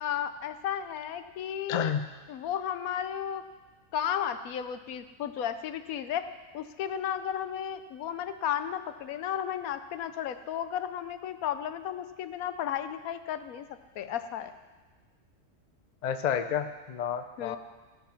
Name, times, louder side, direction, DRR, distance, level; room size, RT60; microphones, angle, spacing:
voice 1, 0.0-1.9 2.3-3.4 3.9-6.3 6.5-13.7 14.0-14.5 17.4-17.6, left 9 dB, 90° left, 10 dB, 1.1 m, -33 dB
voice 2, 1.7-2.0 16.0-17.6, left 8 dB, 50° left, 8 dB, 0.5 m, -30 dB
15.0 x 5.8 x 5.9 m, 1.3 s
omnidirectional pair, 1.5 m